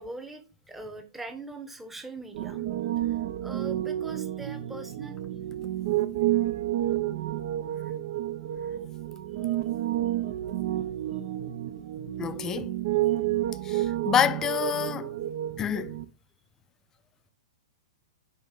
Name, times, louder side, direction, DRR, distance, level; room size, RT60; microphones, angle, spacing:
voice 1, 0.0-5.2 8.5-8.6 13.1-13.2, right 2 dB, 5° right, 0.9 m, -42 dB
Piano, 2.3-16.0, right 13 dB, 50° right, 0.5 m, -30 dB
voice 2, 12.2-12.7 13.6-15.2 15.6-16.0, left 8 dB, 20° left, 0.4 m, -27 dB
6.2 x 4.2 x 3.7 m
figure-of-eight pair, 105°, 2 cm